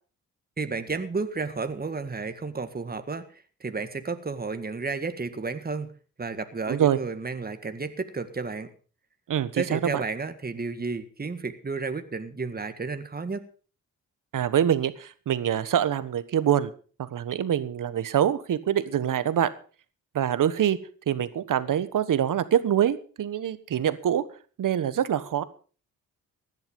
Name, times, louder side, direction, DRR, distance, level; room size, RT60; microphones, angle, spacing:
voice 1, 0.6-5.9 6.2-8.7 9.6-13.4, right 4 dB, 25° right, 9 dB, 1.8 m, -32 dB
voice 2, 6.7-7.0 9.3-10.0 14.3-16.7 17.0-19.5 20.1-20.8 21.1-24.2 24.6-25.4, right 10 dB, 70° right, 14 dB, 1.3 m, -25 dB
16.0 x 10.5 x 5.3 m, 0.39 s
cardioid pair, 70°, 34 cm